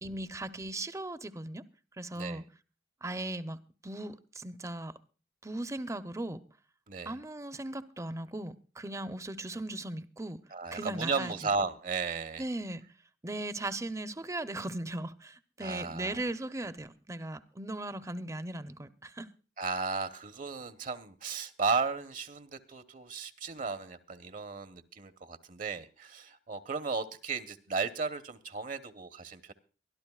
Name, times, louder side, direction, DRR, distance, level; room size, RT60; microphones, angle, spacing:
voice 1, 0.0-1.6 2.0-2.4 3.0-4.9 5.4-6.4 7.1-10.4 10.7-11.3 12.4-12.8 13.2-19.3, right 1 dB, 15° right, 0.7 m, -38 dB
voice 2, 10.5-12.4 15.6-16.2 19.6-29.5, right 4 dB, 50° right, 1.0 m, -35 dB
23.5 x 12.5 x 2.4 m
head